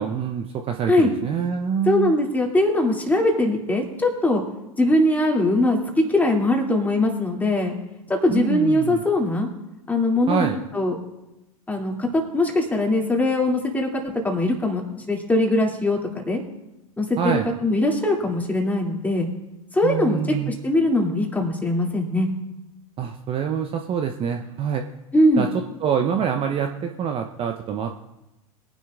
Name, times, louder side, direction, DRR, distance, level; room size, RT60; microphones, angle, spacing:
voice 1, 0.0-2.1 8.3-9.0 10.3-10.6 17.2-17.5 19.8-20.6 23.0-24.8 25.4-25.5 25.8-27.9, right 7 dB, 30° right, 5 dB, 0.8 m, -25 dB
voice 2, 1.9-4.4 4.8-7.7 8.1-9.5 9.9-10.5 10.7-10.9 11.7-14.8 15.1-16.4 17.0-19.3 19.7-20.2 20.5-22.3 25.1-25.5, left 1 dB, 10° left, 0 dB, 2.5 m, -21 dB
21.5 x 10.5 x 2.4 m, 0.96 s
hypercardioid pair, 95°, 19 cm